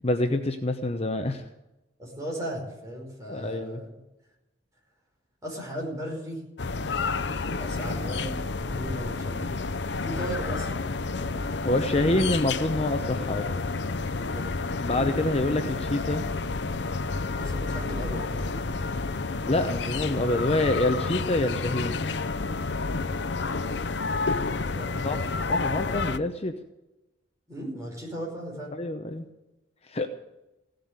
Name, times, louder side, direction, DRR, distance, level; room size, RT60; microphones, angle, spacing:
voice 1, 0.0-1.5 3.3-3.8 11.6-13.5 14.8-16.2 19.5-22.0 25.0-25.2 25.5-26.6 28.7-29.2 29.8-30.1, left 2 dB, 35° left, 6 dB, 0.8 m, -26 dB
voice 2, 2.0-4.0 5.4-6.4 7.5-9.5 10.0-10.9 11.6-11.7 12.0-12.3 14.1-14.5 17.3-18.8 24.7-25.1 27.5-28.7, equal, 15° right, -2 dB, 5.3 m, -36 dB
sound 1, 6.6-26.2, left 3 dB, 65° left, 0.7 m, -30 dB
16.5 x 7.9 x 9.5 m, 0.99 s
head